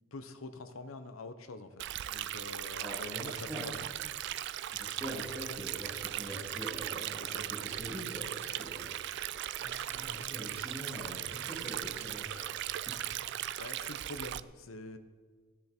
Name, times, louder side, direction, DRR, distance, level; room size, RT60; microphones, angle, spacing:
voice 1, 0.1-1.7 2.1-3.7 7.2-7.4 13.6-15.0, left 2 dB, 80° left, 9 dB, 1.0 m, -45 dB
Stream, 1.8-14.4, right 12 dB, 55° right, 0.3 m, -38 dB
voice 2, 2.8-3.7 4.5-12.6, equal, 10° right, -9 dB, 3.1 m, -44 dB
15.5 x 10.0 x 4.5 m, 1.5 s
head